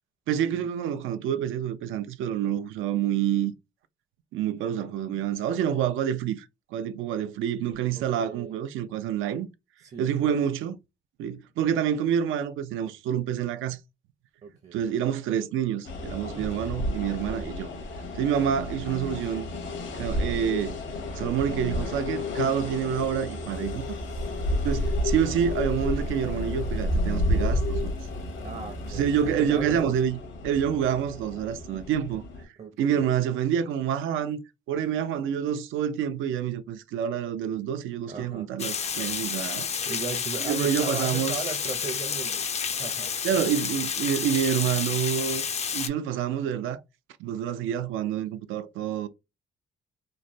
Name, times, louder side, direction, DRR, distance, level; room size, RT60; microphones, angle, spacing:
voice 1, 0.3-3.5 4.3-6.5 6.7-9.5 10.0-10.8 11.2-13.8 14.7-17.7 18.1-19.5 19.9-20.8 21.2-24.0 24.6-27.9 28.9-30.2 30.4-32.2 32.8-34.4 34.7-39.7 40.4-41.4 43.2-45.4 45.7-46.8 47.2-49.1, right 9 dB, 80° right, 0.4 m, -27 dB
voice 2, 7.9-8.7 9.8-10.3 14.4-14.9 16.2-16.5 24.1-24.9 25.3-25.6 28.4-29.9 32.6-33.1 38.1-38.5 39.8-43.1, right 4 dB, 35° right, 0.6 m, -38 dB
sound 1, 15.8-32.4, left 1 dB, 70° left, 1.1 m, -31 dB
sound 2, 23.5-29.6, equal, 90° left, 0.7 m, -41 dB
Water, 38.6-45.9, left 6 dB, 35° left, 0.4 m, -30 dB
3.0 x 2.1 x 2.6 m
cardioid pair, 90°, 20 cm